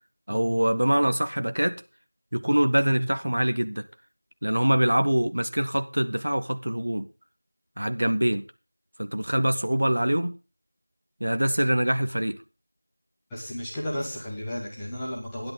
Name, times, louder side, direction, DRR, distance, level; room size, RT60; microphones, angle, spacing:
voice 1, 0.3-1.8 2.3-3.8 4.4-7.1 7.8-8.4 9.0-10.3 11.2-12.4, right 1 dB, 30° right, 0.8 m, -24 dB
voice 2, 13.3-15.5, equal, ahead, 1.0 m, -33 dB
19.0 x 11.0 x 3.8 m
figure-of-eight pair, 180°, 0 cm